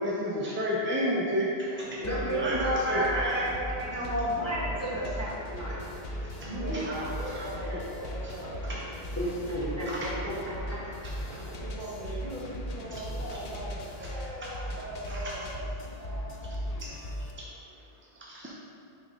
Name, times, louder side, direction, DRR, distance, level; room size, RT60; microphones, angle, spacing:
voice 1, 0.0-1.5 1.8-1.9 2.3-3.5 6.2-7.5 9.9-10.1 11.0-11.1 15.1-15.2 17.4-17.5 18.2-18.5, equal, 20° right, -5 dB, 0.4 m, -31 dB
sound 1, 1.7-11.6, right 2 dB, 60° right, 0.9 m, -46 dB
sound 2, 1.8-17.3, left 1 dB, 50° left, 0.5 m, -38 dB
voice 2, 2.0-5.8 9.1-10.8, equal, 15° left, -9 dB, 1.1 m, -32 dB
voice 3, 6.4-8.6 11.6-15.7 15.9-16.5, right 1 dB, 45° right, -8 dB, 1.5 m, -40 dB
6.2 x 3.1 x 5.0 m, 2.5 s
omnidirectional pair, 1.0 m